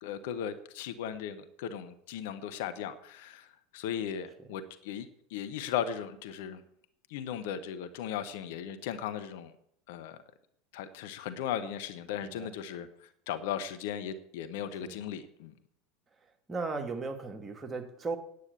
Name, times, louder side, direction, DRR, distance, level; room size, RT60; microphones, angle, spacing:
voice 1, 0.0-3.5 3.7-6.6 7.1-9.5 9.9-10.2 10.7-15.5, left 9 dB, 60° left, 1.1 m, -37 dB
voice 2, 16.5-18.2, right 4 dB, 20° right, 1.8 m, -36 dB
9.5 x 8.2 x 8.4 m
figure-of-eight pair, 75°, 0 cm